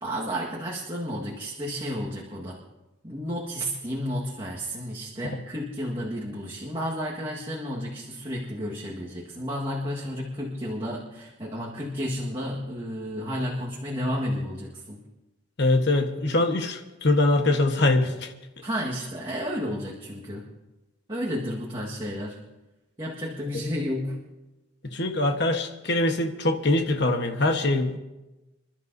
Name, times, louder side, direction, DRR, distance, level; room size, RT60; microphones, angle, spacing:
voice 1, 0.0-2.6 3.0-15.0 18.6-20.5 21.1-22.4 23.0-24.2, equal, 25° right, -4 dB, 1.6 m, -32 dB
voice 2, 15.6-18.3 24.9-28.0, left 2 dB, 55° left, 5 dB, 1.2 m, -23 dB
27.5 x 12.0 x 2.7 m, 1.0 s
head